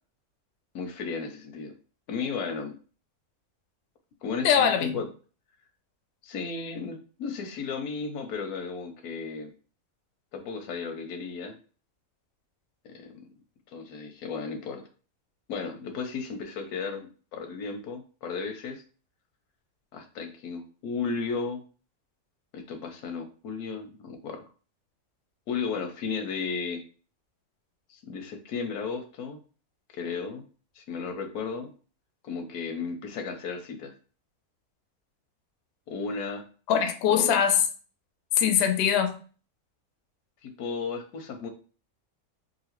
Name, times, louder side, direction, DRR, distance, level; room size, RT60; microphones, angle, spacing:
voice 1, 0.7-1.7 2.1-2.7 4.2-5.1 6.2-9.5 10.3-11.5 12.8-13.1 13.7-14.9 15.5-18.8 19.9-21.6 22.5-24.4 25.5-26.8 27.9-29.4 29.9-30.4 30.8-31.7 32.2-33.9 35.9-36.4 37.1-37.4 40.4-41.5, left 5 dB, 90° left, 1.1 m, -34 dB
voice 2, 4.4-5.0 36.7-37.6 38.4-39.2, left 8 dB, 65° left, 0.6 m, -22 dB
2.9 x 2.5 x 2.9 m
omnidirectional pair, 1.5 m